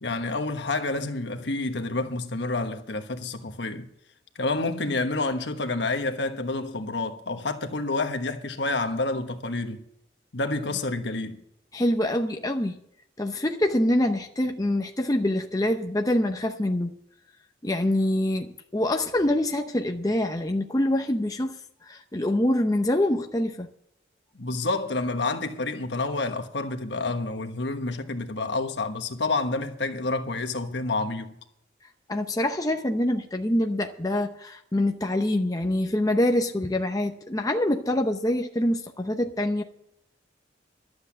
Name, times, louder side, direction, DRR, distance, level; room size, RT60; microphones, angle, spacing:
voice 1, 0.0-3.9 4.3-9.8 10.3-11.4 24.3-31.4, left 3 dB, 70° left, 1.2 m, -29 dB
voice 2, 11.7-12.8 13.2-17.0 17.6-21.6 21.9-23.7 32.1-39.6, left 1 dB, 20° left, 0.7 m, -25 dB
12.0 x 8.0 x 8.4 m
head